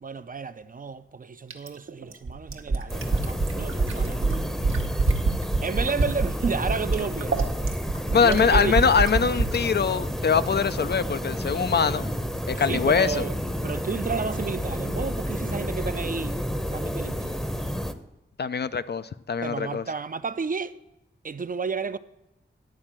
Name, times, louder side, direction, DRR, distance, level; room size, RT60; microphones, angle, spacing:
voice 1, 0.0-4.4 5.6-7.5 8.2-8.7 12.6-16.4 16.7-17.3 19.4-20.8 21.2-22.0, right 5 dB, 40° right, 0.5 m, -32 dB
Fill (with liquid), 1.5-9.6 10.9-11.0, right 3 dB, 80° right, 1.0 m, -25 dB
sound 1, 2.9-17.9, equal, ahead, 0.7 m, -31 dB
voice 2, 8.1-12.1 12.5-13.2 18.4-19.8, left 6 dB, 55° left, 0.4 m, -23 dB
10.5 x 4.3 x 7.3 m
cardioid pair, 50°, 21 cm